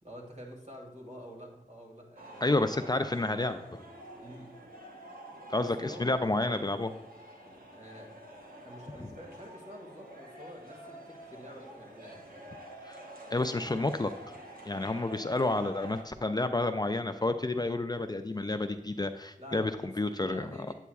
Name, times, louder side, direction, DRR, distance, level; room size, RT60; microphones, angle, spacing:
voice 1, 0.0-2.4 4.2-4.5 5.6-6.6 7.4-8.2 8.6-12.4 19.4-20.7, equal, 55° right, -1 dB, 2.0 m, -48 dB
sound 1, 2.2-16.0, right 1 dB, 85° right, 1.0 m, -48 dB
voice 2, 2.4-3.8 5.5-6.9 9.0-9.1 12.8-13.0 13.3-14.1 14.7-20.5, left 2 dB, 30° left, 8 dB, 0.3 m, -30 dB
8.2 x 8.1 x 2.3 m, 0.82 s
wide cardioid pair, 60°, 15 cm